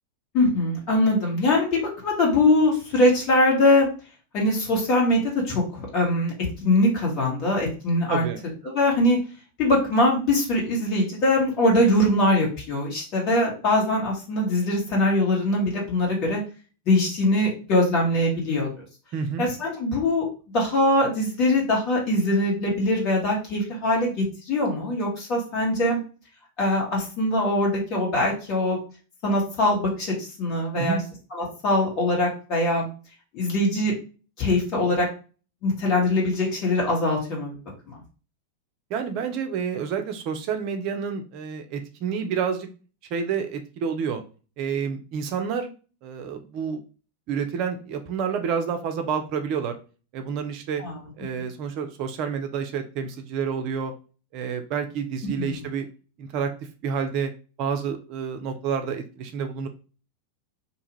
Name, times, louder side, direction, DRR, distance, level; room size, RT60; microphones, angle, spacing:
voice 1, 0.3-3.9 4.3-6.3 6.6-8.2 8.6-9.2 9.6-16.4 16.9-18.7 19.4-20.2 20.5-26.0 26.6-28.8 29.2-31.0 31.3-32.9 33.3-33.9 34.4-35.1 35.6-37.5 37.9-38.0 50.8-51.0 55.4-55.7, left 1 dB, 40° left, -2 dB, 1.4 m, -22 dB
voice 2, 8.1-8.4 19.1-19.5 30.8-31.0 38.9-42.7 43.1-44.2 44.6-45.7 46.0-46.8 47.3-49.8 50.1-50.8 51.2-53.9 54.3-55.9 56.2-56.5 56.8-57.3 57.6-59.7, right 6 dB, 40° right, 6 dB, 0.5 m, -29 dB
2.6 x 2.3 x 3.0 m, 0.35 s
figure-of-eight pair, 90°, 0 cm